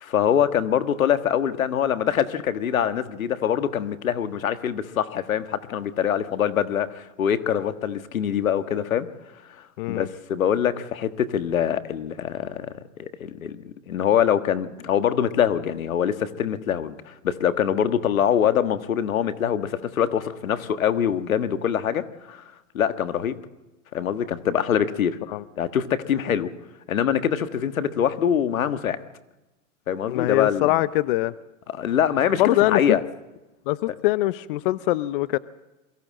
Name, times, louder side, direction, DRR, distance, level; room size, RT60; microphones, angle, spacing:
voice 1, 0.0-9.1 9.9-12.7 13.0-22.4 22.7-23.4 23.9-25.2 25.6-26.5 26.9-29.0 29.9-30.8 31.7-33.0, left 9 dB, 85° left, 11 dB, 1.6 m, -24 dB
voice 2, 30.1-31.3 32.4-33.0 33.7-35.4, left 17 dB, 45° left, 18 dB, 0.6 m, -23 dB
23.0 x 15.5 x 7.5 m, 1.0 s
hypercardioid pair, 140°, 40 cm